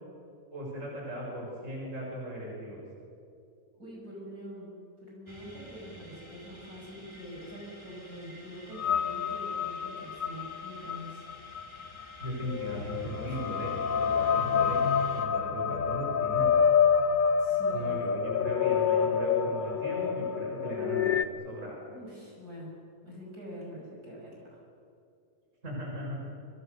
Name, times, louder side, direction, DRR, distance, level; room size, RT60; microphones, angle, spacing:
voice 1, 0.5-2.8 12.2-16.5 17.7-21.8 25.6-26.3, right 1 dB, 45° right, -3 dB, 6.4 m, -38 dB
voice 2, 3.7-4.7 5.0-11.3 13.3-13.5 17.4-18.0 21.9-22.7 23.0-24.6, equal, 65° right, -3 dB, 6.8 m, -45 dB
sound 1, 5.3-15.3, equal, 15° left, 3.1 m, -51 dB
sound 2, 8.8-21.2, left 7 dB, 50° left, 0.6 m, -28 dB
28.5 x 24.5 x 6.7 m, 2.5 s
omnidirectional pair, 1.7 m